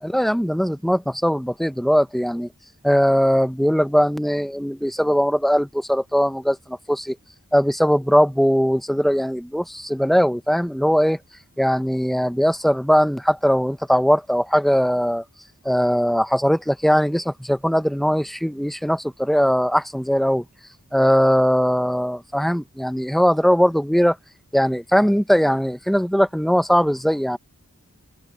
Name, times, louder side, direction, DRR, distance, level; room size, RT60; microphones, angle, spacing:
voice 1, 0.0-2.5 2.8-7.2 7.5-11.2 11.6-15.2 15.6-20.4 20.9-24.2 24.5-27.4, equal, ahead, 0.8 m, -20 dB
open air
head